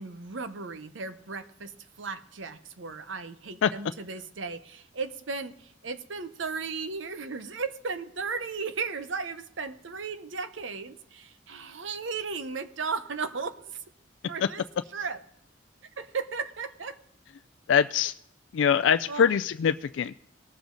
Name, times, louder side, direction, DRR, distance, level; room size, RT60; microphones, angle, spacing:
voice 1, 0.0-1.7 2.0-13.8 14.3-14.7 14.9-15.2 16.0-17.0 19.1-19.4, right 4 dB, 75° right, 11 dB, 0.8 m, -35 dB
voice 2, 17.7-18.1 18.5-20.1, left 7 dB, 75° left, 11 dB, 0.3 m, -23 dB
19.0 x 7.2 x 3.8 m, 0.74 s
head